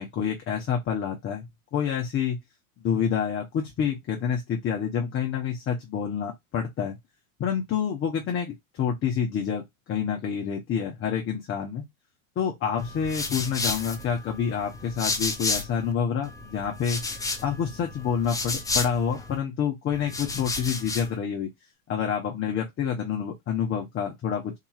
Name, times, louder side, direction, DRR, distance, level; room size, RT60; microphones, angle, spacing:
voice 1, 0.0-1.5 1.7-2.4 2.8-7.0 7.4-9.6 9.9-11.8 12.4-17.0 17.4-21.5 21.9-24.5, left 7 dB, 30° left, 0.9 m, -28 dB
wiping off arms, 12.8-15.9 16.2-19.4 19.9-21.2, left 3 dB, 10° left, 0.6 m, -32 dB
3.8 x 2.8 x 2.3 m
hypercardioid pair, 100°, 42 cm